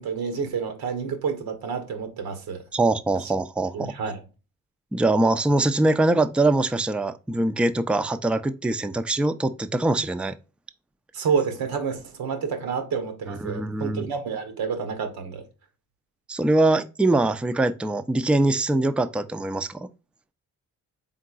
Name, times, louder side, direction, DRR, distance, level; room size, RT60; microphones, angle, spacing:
voice 1, 0.0-2.6 3.2-3.3 3.7-4.2 11.1-15.5, right 6 dB, 85° right, 1.0 m, -29 dB
voice 2, 2.7-4.0 4.9-10.4 13.3-14.1 16.3-19.9, right 2 dB, 5° right, 0.3 m, -23 dB
3.8 x 3.7 x 2.3 m
supercardioid pair, 50°, 36 cm